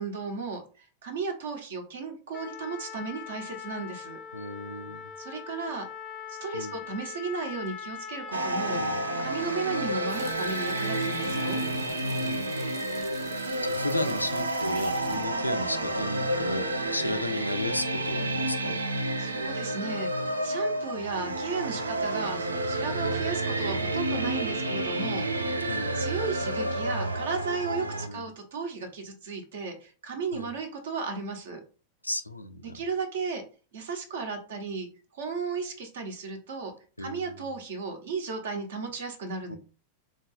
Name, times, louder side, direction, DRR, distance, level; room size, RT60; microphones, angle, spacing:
voice 1, 0.0-4.2 5.2-5.9 6.3-8.8 9.2-11.6 19.2-25.7 25.9-31.6 32.6-33.4 33.7-36.7 37.0-39.6, right 4 dB, 60° right, 4 dB, 1.2 m, -35 dB
Trumpet, 2.3-11.8, left 8 dB, 25° left, 0.6 m, -41 dB
voice 2, 4.3-5.1 6.5-6.7 8.7-9.0 11.3-12.4 13.6-18.8 25.0-25.3 25.6-25.9 27.8-28.3 30.3-30.5 32.0-32.8 37.0-37.5 39.5-39.6, left 1 dB, 85° left, 10 dB, 0.4 m, -35 dB
sound 1, 8.3-28.1, right 1 dB, 75° right, 0.4 m, -30 dB
Water tap faucet, 10.1-16.5 16.9-17.0, right 7 dB, 40° right, 0.8 m, -48 dB
3.8 x 2.9 x 4.1 m, 0.36 s
figure-of-eight pair, 90°, 0 cm